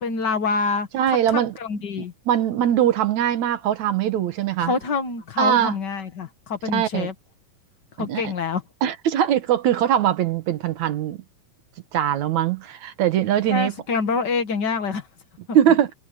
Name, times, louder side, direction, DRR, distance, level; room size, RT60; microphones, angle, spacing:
voice 1, 0.0-2.1 4.6-7.1 8.0-8.6 13.5-15.1 15.5-15.6, left 4 dB, 45° left, 1.4 m, -26 dB
voice 2, 0.9-1.5 2.3-4.7 5.4-5.8 6.7-7.1 8.0-8.3 8.8-11.2 11.9-13.7 15.5-15.9, right 10 dB, 65° right, 2.4 m, -21 dB
omnidirectional pair, 3.9 m